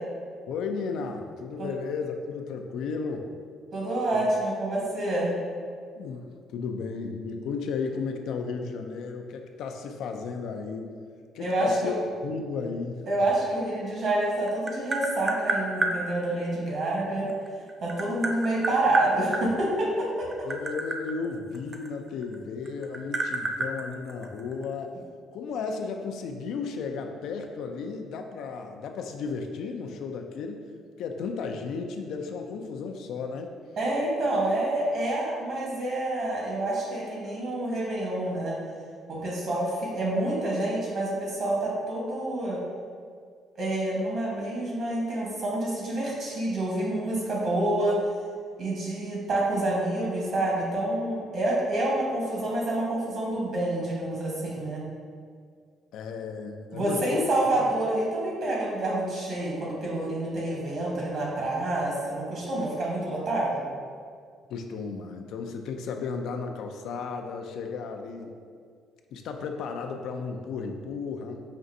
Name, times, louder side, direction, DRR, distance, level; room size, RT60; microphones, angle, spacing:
voice 1, 0.5-3.3 4.1-4.3 6.0-10.9 11.3-11.9 12.2-13.0 20.4-25.0 25.3-30.6 31.0-33.5 55.9-57.5 64.5-68.3 69.1-71.4, left 5 dB, 75° left, 4 dB, 0.3 m, -34 dB
voice 2, 3.7-5.3 11.4-11.9 13.1-17.3 17.8-20.3 33.8-38.5 39.1-42.6 43.6-48.0 48.6-54.8 56.7-63.6, right 1 dB, 55° right, -4 dB, 1.2 m, -28 dB
Tap, 14.1-16.0 17.3-19.4 20.2-22.3 22.6-24.6, right 2 dB, 30° right, 0.4 m, -30 dB
5.1 x 2.5 x 2.6 m, 2.1 s
cardioid pair, 105°, 0 cm